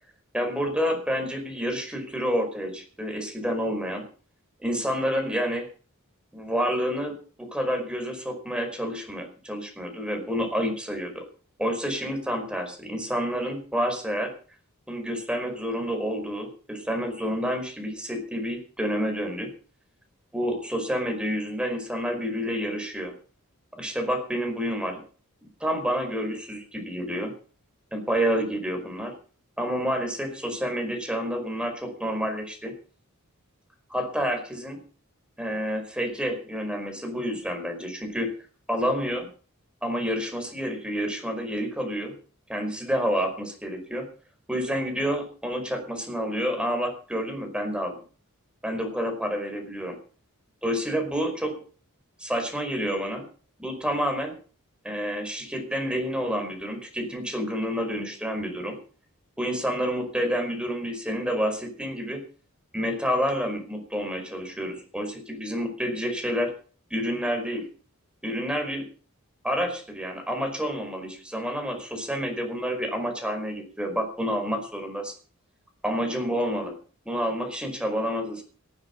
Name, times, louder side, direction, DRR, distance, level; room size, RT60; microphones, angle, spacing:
voice 1, 0.3-4.1 4.6-5.7 6.3-11.2 11.6-14.3 14.9-19.5 20.3-23.1 23.7-25.0 25.6-27.3 27.9-29.1 29.6-32.7 33.9-34.8 35.4-38.3 38.7-39.3 39.8-42.2 42.5-44.1 44.5-48.0 48.6-50.0 50.6-51.6 52.2-53.3 53.6-54.3 54.8-58.8 59.4-62.2 62.7-66.5 66.9-67.7 68.2-68.9 69.4-75.1 75.8-76.8 77.0-78.4, equal, 5° right, 4 dB, 5.1 m, -29 dB
18.5 x 10.5 x 5.4 m, 0.39 s
head